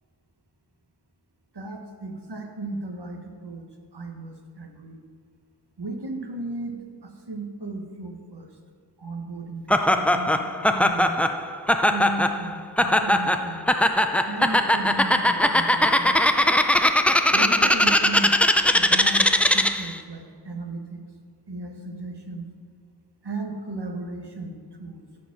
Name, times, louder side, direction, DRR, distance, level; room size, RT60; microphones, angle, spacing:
voice 1, 1.5-3.6 3.9-5.0 5.8-6.7 7.0-8.5 9.0-10.4 10.7-11.2 11.8-13.6 14.2-16.2 17.3-18.3 18.7-21.0 21.5-22.5 23.2-25.0, right 2 dB, 75° right, 3 dB, 1.3 m, -35 dB
Laughter, 9.7-19.9, left 1 dB, 5° left, 0.4 m, -20 dB
13.5 x 5.1 x 6.0 m, 2.1 s
wide cardioid pair, 65°, 41 cm